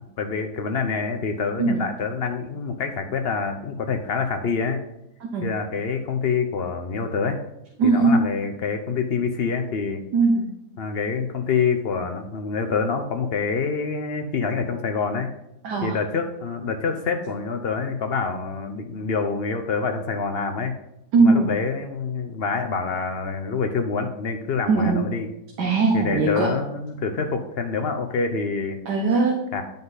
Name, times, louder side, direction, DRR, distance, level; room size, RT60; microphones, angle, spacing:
voice 1, 0.2-4.8 5.4-7.4 7.8-10.0 10.8-15.3 15.8-20.7 21.2-25.3 25.9-28.8 29.5-29.6, left 5 dB, 50° left, 6 dB, 0.7 m, -26 dB
voice 2, 7.8-8.2 10.1-10.5 15.6-16.0 21.1-21.5 24.7-25.1 25.6-26.5 28.9-29.4, right 3 dB, 85° right, 0 dB, 1.6 m, -19 dB
9.8 x 5.3 x 4.0 m, 0.86 s
omnidirectional pair, 1.7 m